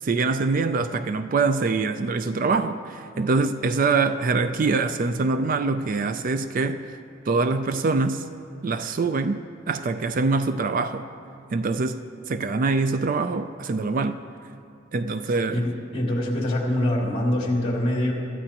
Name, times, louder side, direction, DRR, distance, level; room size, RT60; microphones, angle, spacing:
voice 1, 0.0-6.8 7.3-8.3 8.6-11.1 11.5-14.2 14.9-15.6, right 4 dB, 45° right, 10 dB, 0.4 m, -24 dB
voice 2, 15.5-18.1, left 1 dB, 30° left, -3 dB, 2.7 m, -24 dB
23.0 x 13.5 x 2.9 m, 2.5 s
head